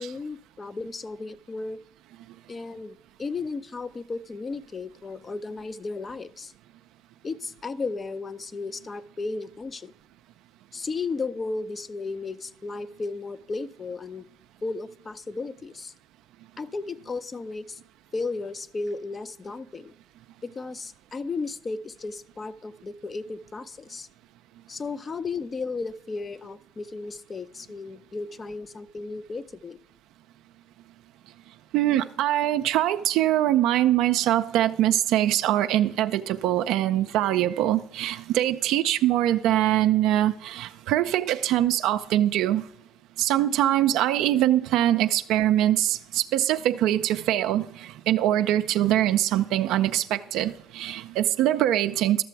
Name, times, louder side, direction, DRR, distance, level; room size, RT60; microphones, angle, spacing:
voice 1, 0.0-1.8 2.5-6.5 7.2-9.9 10.7-14.3 14.6-15.9 16.6-17.8 18.1-19.9 20.4-24.1 24.7-29.8, left 3 dB, 30° left, 0.5 m, -34 dB
voice 2, 31.7-42.7 43.2-52.2, right 13 dB, 75° right, 0.3 m, -23 dB
12.5 x 6.7 x 4.6 m
supercardioid pair, 75°, 0 cm